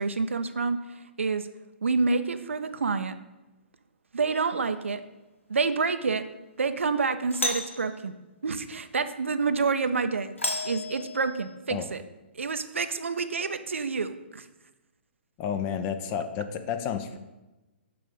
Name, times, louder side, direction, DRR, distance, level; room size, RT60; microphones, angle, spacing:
voice 1, 0.0-1.5 1.8-3.1 4.1-5.0 5.5-6.2 6.6-8.1 8.4-10.4 10.6-12.0 12.3-14.5, right 4 dB, 80° right, 10 dB, 0.4 m, -28 dB
Doorbell, 4.3-4.7 7.3-7.9 10.4-11.5, left 2 dB, 85° left, 0.9 m, -33 dB
voice 2, 15.4-17.2, left 8 dB, 30° left, 8 dB, 0.5 m, -31 dB
7.4 x 2.5 x 5.3 m, 1.0 s
figure-of-eight pair, 125°, 7 cm